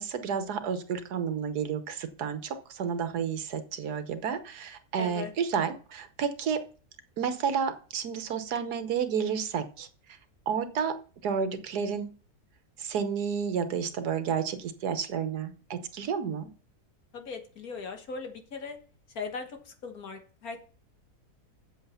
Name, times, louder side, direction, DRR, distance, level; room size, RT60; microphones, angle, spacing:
voice 1, 0.0-6.6 7.2-9.9 10.5-10.9 11.2-12.1 12.8-16.5, right 7 dB, 75° right, 10 dB, 1.5 m, -31 dB
voice 2, 5.0-5.3 17.1-18.8 19.2-20.6, left 4 dB, 65° left, 5 dB, 1.9 m, -39 dB
8.1 x 7.3 x 5.5 m, 0.40 s
omnidirectional pair, 1.7 m